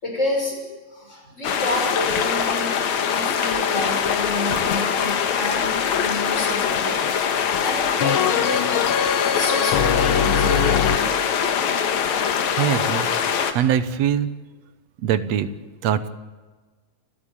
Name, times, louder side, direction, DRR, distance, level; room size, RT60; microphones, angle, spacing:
voice 1, 0.0-0.6 0.9-8.8 9.3-11.2, left 2 dB, 20° left, 0 dB, 6.5 m, -29 dB
sound 1, 1.4-13.5, left 7 dB, 70° left, 2.8 m, -23 dB
sound 2, 8.0-11.0, left 8 dB, 85° left, 1.1 m, -22 dB
voice 2, 12.6-13.1 13.5-14.3 15.0-15.5 15.8-16.1, right 9 dB, 65° right, 13 dB, 2.0 m, -22 dB
29.0 x 13.0 x 8.6 m, 1.3 s
omnidirectional pair, 3.5 m